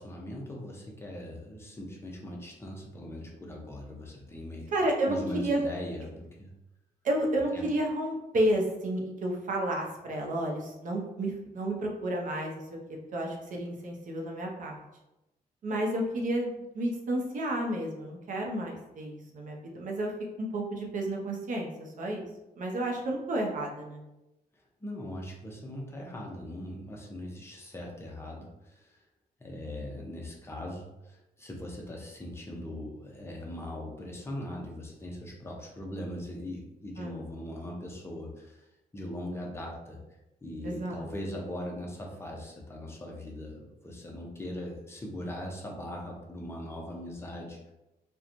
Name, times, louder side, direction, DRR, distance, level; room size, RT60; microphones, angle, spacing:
voice 1, 0.0-4.7 5.1-6.5 7.5-7.6 24.8-29.0 29.4-38.7 38.9-40.0 40.4-47.7, left 1 dB, 15° left, -1 dB, 0.5 m, -40 dB
voice 2, 4.7-5.6 7.0-12.8 13.1-14.8 15.6-20.1 20.4-22.3 22.6-24.0 37.0-37.2 40.6-41.1, right 1 dB, 55° right, 0 dB, 0.6 m, -31 dB
2.8 x 2.2 x 2.5 m, 0.95 s
wide cardioid pair, 155°, 16 cm